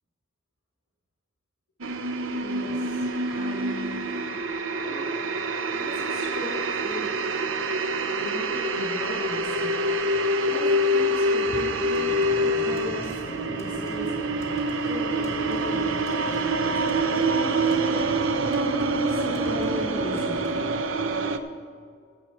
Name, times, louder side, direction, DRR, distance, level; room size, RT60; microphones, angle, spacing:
sound 1, 1.8-21.4, right 1 dB, 80° right, 0.6 m, -26 dB
voice 1, 1.9-4.0 4.4-5.2 5.7-7.1 8.1-20.5, equal, 75° left, -3 dB, 2.9 m, -37 dB
sound 2, 11.9-20.7, equal, 15° left, 1.9 m, -41 dB
10.5 x 6.5 x 7.6 m, 2.1 s
head